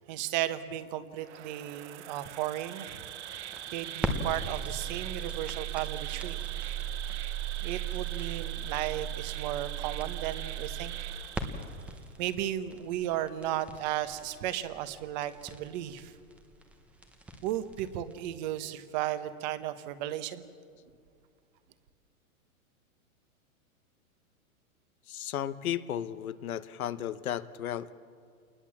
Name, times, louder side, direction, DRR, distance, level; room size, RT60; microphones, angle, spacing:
voice 1, 0.0-3.0 3.7-6.4 7.6-10.9 12.2-16.1 17.4-20.4, right 12 dB, 30° right, 12 dB, 1.2 m, -34 dB
Insect, 1.2-12.0, right 11 dB, 50° right, 1.3 m, -42 dB
sound 1, 3.0-18.2, right 6 dB, 5° right, 0.8 m, -38 dB
voice 2, 25.1-27.9, left 10 dB, 75° left, 13 dB, 1.3 m, -34 dB
28.0 x 20.5 x 7.4 m, 2.2 s
hypercardioid pair, 160°, 43 cm